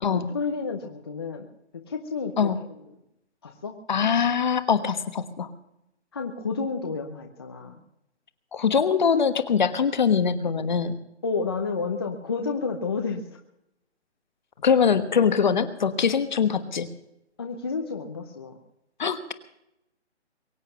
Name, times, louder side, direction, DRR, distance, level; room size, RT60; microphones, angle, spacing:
voice 1, 0.1-1.5 1.9-2.8 3.4-3.7 6.1-7.8 11.2-13.3 17.4-18.6, left 4 dB, 20° left, 3 dB, 0.8 m, -30 dB
voice 2, 3.9-5.5 8.5-11.0 14.6-16.9 19.0-19.3, left 6 dB, 40° left, 11 dB, 1.3 m, -23 dB
23.0 x 8.3 x 6.8 m, 0.84 s
hypercardioid pair, 170°, 35 cm